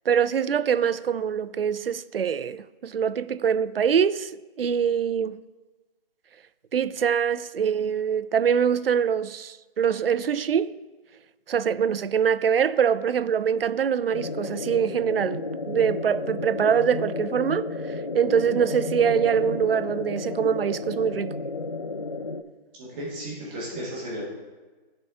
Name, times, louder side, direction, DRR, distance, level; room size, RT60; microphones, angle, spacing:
voice 1, 0.1-4.3 4.6-5.4 6.7-10.7 11.5-21.4, right 7 dB, 75° right, 0.5 m, -24 dB
sound 1, 14.1-22.4, left 3 dB, 40° left, 0.4 m, -32 dB
voice 2, 22.8-24.2, equal, 10° right, 1.4 m, -34 dB
13.0 x 4.4 x 3.6 m
figure-of-eight pair, 165°, 29 cm